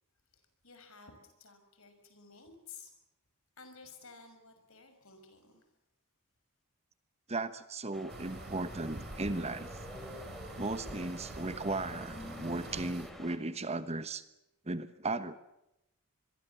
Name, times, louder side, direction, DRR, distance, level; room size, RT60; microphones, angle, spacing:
voice 1, 0.3-2.9 3.6-5.6, left 5 dB, 65° left, 7 dB, 6.2 m, -54 dB
voice 2, 7.3-9.8 10.6-14.2 14.7-15.4, right 2 dB, 30° right, 13 dB, 1.1 m, -36 dB
sound 1, 7.9-13.4, equal, ahead, 3.5 m, -48 dB
sound 2, 8.1-13.1, right 2 dB, 45° right, 2.7 m, -46 dB
26.5 x 22.0 x 7.1 m, 0.88 s
head